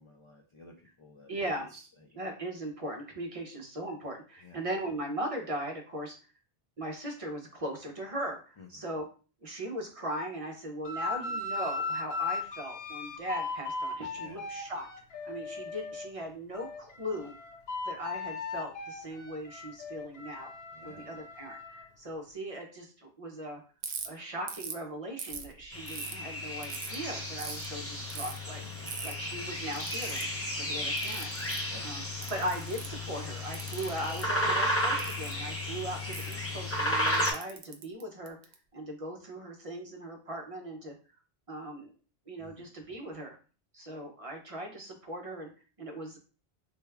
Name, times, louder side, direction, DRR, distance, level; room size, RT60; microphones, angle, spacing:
voice 1, 0.0-1.3 1.7-1.8 4.4-4.6 8.6-8.7 14.1-14.4 20.7-21.1 28.6-28.9 31.7-31.9 34.4-34.6 42.4-42.7, left 2 dB, 50° left, 1 dB, 0.3 m, -51 dB
voice 2, 1.3-1.7 2.1-6.2 6.8-9.1 9.4-14.9 15.2-17.3 17.8-20.5 20.8-23.6 24.0-28.6 29.0-30.3 30.5-31.3 31.8-32.0 32.3-40.9 41.5-41.9 42.3-43.4 43.7-45.5 45.8-46.2, right 1 dB, 40° right, 1 dB, 0.7 m, -39 dB
sound 1, 10.8-16.1 16.5-21.8, left 3 dB, 75° left, 0.9 m, -38 dB
Ratchet pawl, 23.8-24.1 24.5-24.8 25.2-26.1 26.6-27.0 27.4-27.7 28.1-28.4 28.9-29.1 29.7-30.2 31.0-31.6 32.2-33.0 33.5-34.2 35.0-35.3 36.1-36.3 37.1-38.5, right 6 dB, 90° right, 0.8 m, -41 dB
sound 2, 25.7-37.3, equal, 15° left, 0.6 m, -33 dB
3.3 x 2.3 x 3.3 m, 0.36 s
omnidirectional pair, 1.0 m